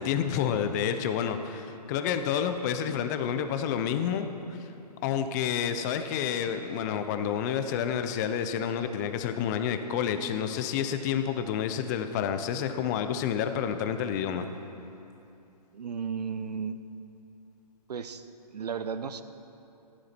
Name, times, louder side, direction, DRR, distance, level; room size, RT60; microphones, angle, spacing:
voice 1, 0.0-4.6 5.0-14.5, left 8 dB, 25° left, 8 dB, 0.6 m, -29 dB
voice 2, 15.7-16.8 17.9-19.2, right 6 dB, 70° right, 11 dB, 0.8 m, -34 dB
14.5 x 11.5 x 4.4 m, 2.8 s
hypercardioid pair, 140°, 21 cm